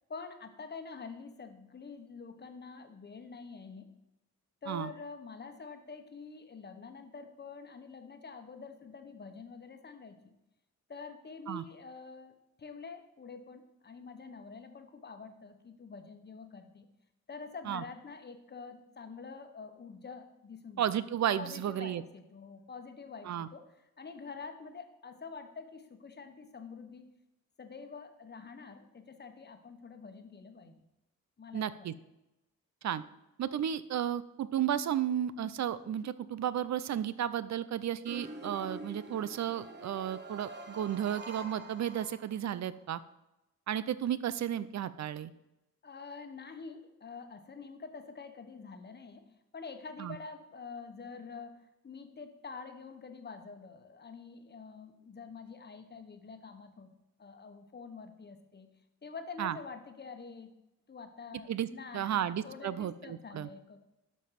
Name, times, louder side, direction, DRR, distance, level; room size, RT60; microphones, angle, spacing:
voice 1, 0.1-3.9 4.6-10.3 10.9-16.9 17.3-20.8 21.4-27.1 27.6-30.8 31.4-31.9 45.8-56.9 57.2-58.7 59.0-60.5 60.9-63.8, left 4 dB, 35° left, 7 dB, 1.2 m, -47 dB
voice 2, 20.8-22.0 23.3-23.5 31.5-31.9 32.8-33.0 33.4-43.0 43.7-45.3 50.0-50.2 59.4-59.6 61.5-61.7 61.9-63.5, right 10 dB, 60° right, 16 dB, 0.6 m, -33 dB
sound 1, 38.1-42.7, right 2 dB, 35° right, 1.4 m, -46 dB
11.5 x 5.3 x 5.8 m, 0.94 s
wide cardioid pair, 120°, 31 cm